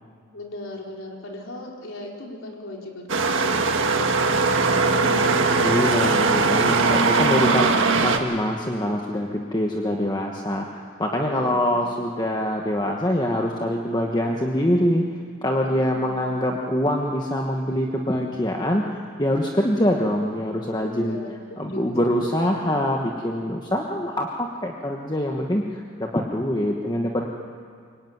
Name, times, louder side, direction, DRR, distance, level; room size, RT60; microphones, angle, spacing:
voice 1, 0.3-5.7 11.0-11.9 15.6-16.5 20.8-22.2, left 1 dB, 70° left, 0 dB, 4.1 m, -37 dB
sound 1, 3.1-8.2, right 3 dB, 65° right, 1.7 m, -20 dB
voice 2, 5.6-7.7 8.0-10.7 11.0-15.0 15.4-18.9 19.2-21.2 21.6-27.3, left 1 dB, 20° left, 0 dB, 1.4 m, -24 dB
24.5 x 23.0 x 9.4 m, 2.2 s
head